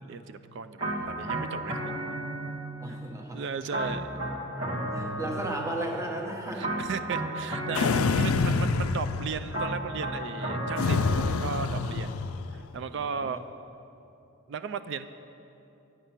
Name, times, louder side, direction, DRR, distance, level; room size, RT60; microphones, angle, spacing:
voice 1, 0.0-1.8 2.1-2.2 3.3-4.2 6.5-12.2 12.5-13.5 14.5-15.1, right 6 dB, 55° right, 11 dB, 0.3 m, -36 dB
sound 1, 0.8-2.9 3.7-6.1 6.6-8.7 9.5-11.9, right 1 dB, 85° right, 1.6 m, -33 dB
voice 2, 2.8-3.4 4.9-6.7 13.0-13.4, right 1 dB, 15° right, 0 dB, 0.9 m, -35 dB
sound 2, 7.7-9.6 10.8-12.6, left 4 dB, 85° left, 0.4 m, -27 dB
9.4 x 8.9 x 5.7 m, 2.9 s
head